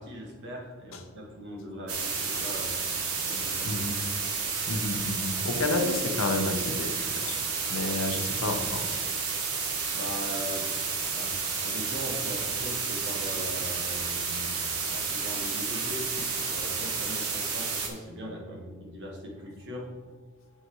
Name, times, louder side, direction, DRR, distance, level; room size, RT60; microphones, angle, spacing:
voice 1, 0.0-3.8 8.5-8.6 9.9-10.8 11.1-14.6 14.9-16.1 16.4-19.9, equal, 55° right, -1 dB, 1.7 m, -40 dB
sound 1, 1.9-17.9, right 5 dB, 85° right, 1.4 m, -31 dB
voice 2, 3.7-4.0 4.7-6.9 7.3-7.4 7.7-9.0, left 2 dB, 65° left, 5 dB, 0.9 m, -30 dB
7.9 x 7.5 x 3.2 m, 1.6 s
head